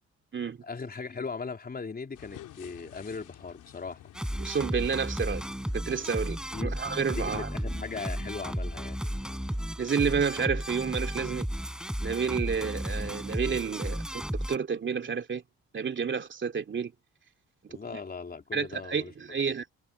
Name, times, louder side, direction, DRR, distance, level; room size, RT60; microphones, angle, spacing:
voice 1, 0.6-4.0 6.5-6.8 7.2-9.0 17.7-19.1, left 4 dB, 30° left, 3.8 m, -38 dB
sound 1, 2.1-9.7, left 13 dB, 85° left, 4.3 m, -51 dB
sound 2, 4.1-14.6, equal, ahead, 4.3 m, -34 dB
voice 2, 4.4-5.4 5.7-7.5 9.8-11.5 12.0-14.2 14.5-15.4 15.7-16.9 18.5-19.6, right 6 dB, 40° right, 2.7 m, -30 dB
cardioid pair, 90°, 30 cm